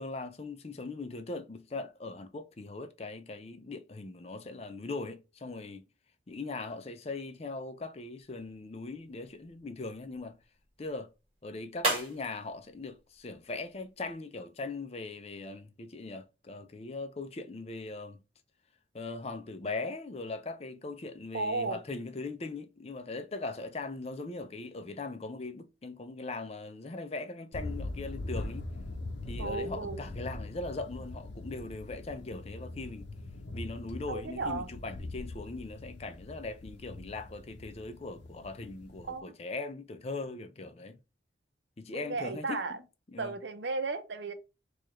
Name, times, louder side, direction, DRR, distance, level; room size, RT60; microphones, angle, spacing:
voice 1, 0.0-5.8 6.3-10.4 10.8-11.1 11.4-18.2 18.9-28.7 29.3-33.1 33.5-41.0 41.8-42.8 43.1-43.3, left 3 dB, 35° left, 0.5 m, -40 dB
sound 1, 8.2-14.2, right 2 dB, 30° right, 1.3 m, -40 dB
voice 2, 21.3-21.8 29.4-30.0 34.1-34.7 39.1-39.3 41.9-42.8 43.2-44.3, right 3 dB, 75° right, 0.6 m, -34 dB
sound 2, 27.5-39.2, left 2 dB, 75° left, 0.7 m, -42 dB
4.7 x 2.4 x 3.0 m
head